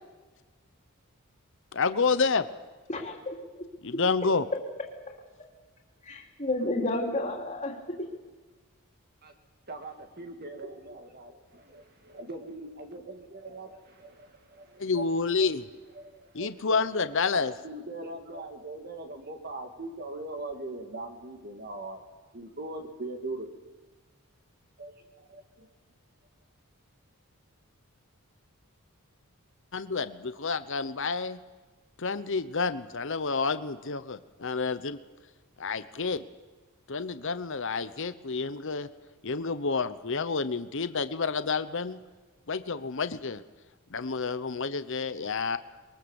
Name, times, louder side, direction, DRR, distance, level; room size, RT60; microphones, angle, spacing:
voice 1, 1.7-2.5 3.8-4.4 14.8-15.7 16.3-17.5 29.7-31.4 32.0-35.0 35.6-36.2 36.9-38.9 39.2-42.0 42.5-43.4 43.9-45.6, left 4 dB, 55° left, 12 dB, 0.9 m, -29 dB
voice 2, 2.9-3.7 4.5-4.6 5.1-5.5 6.0-8.1, left 2 dB, 30° left, 1 dB, 3.2 m, -32 dB
voice 3, 9.7-15.1 15.4-15.5 15.9-16.8 17.3-22.0 22.3-23.5 24.8-25.7, right 2 dB, 45° right, 4 dB, 2.1 m, -41 dB
23.0 x 22.5 x 7.2 m, 1.3 s
head